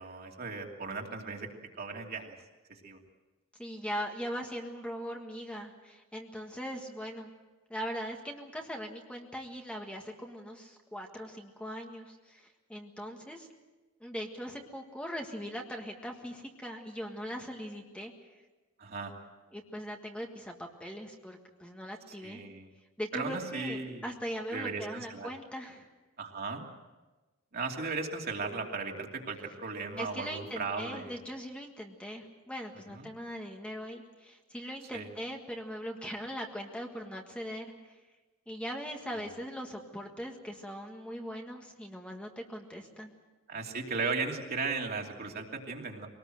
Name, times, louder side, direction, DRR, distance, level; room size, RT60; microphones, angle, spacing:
voice 1, 0.0-1.5 1.8-2.4 2.7-3.0 18.8-19.1 22.2-22.7 23.1-24.0 24.5-25.3 26.2-26.7 27.5-31.2 32.9-33.1 34.9-35.1 43.5-46.1, right 4 dB, 50° right, 0 dB, 2.8 m, -36 dB
voice 2, 3.6-7.3 7.7-13.5 14.0-18.1 19.5-22.4 23.0-25.9 30.0-38.0 38.5-43.1, equal, 5° left, 2 dB, 1.6 m, -40 dB
23.5 x 19.0 x 7.8 m, 1.2 s
head